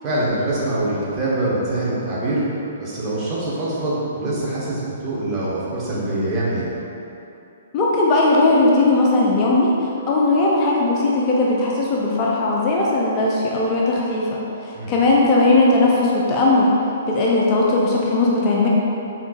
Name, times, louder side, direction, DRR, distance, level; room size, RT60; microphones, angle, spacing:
voice 1, 0.0-6.7 14.7-14.9, right 1 dB, 25° right, -8 dB, 1.1 m, -24 dB
voice 2, 7.7-9.7 10.1-16.7 17.1-18.7, left 2 dB, 30° left, -4 dB, 0.5 m, -18 dB
4.4 x 3.7 x 2.4 m, 2.9 s
figure-of-eight pair, 120°, 0 cm